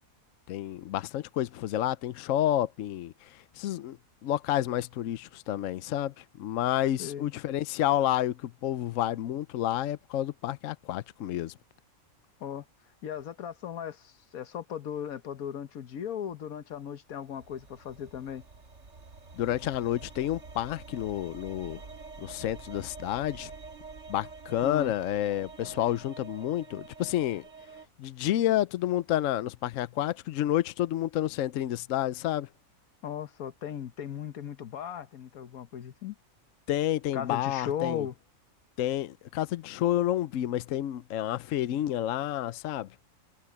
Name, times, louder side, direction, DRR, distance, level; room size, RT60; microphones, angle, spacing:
voice 1, 0.5-4.0 4.2-11.5 19.3-21.8 22.2-23.5 24.1-27.4 28.0-32.5 36.7-38.1 38.8-42.9, left 12 dB, 70° left, 1.0 m, -30 dB
voice 2, 7.0-7.3 12.4-12.6 13.0-18.4 24.6-24.9 33.0-36.1 37.1-38.1, left 9 dB, 90° left, 1.5 m, -37 dB
sound 1, 17.1-27.9, right 4 dB, 55° right, 1.9 m, -47 dB
omnidirectional pair, 1.5 m